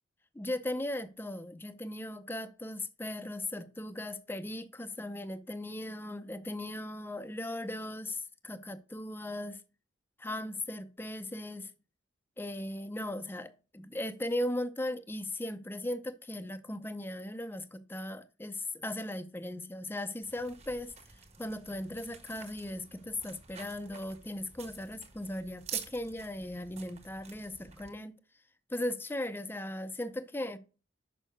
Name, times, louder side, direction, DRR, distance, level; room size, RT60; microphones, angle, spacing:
voice 1, 0.3-9.6 10.2-11.7 12.4-28.2 28.7-30.6, left 1 dB, 10° left, 0.5 m, -38 dB
sound 1, 20.2-27.9, right 7 dB, 35° right, 1.3 m, -47 dB
6.4 x 5.5 x 6.4 m
head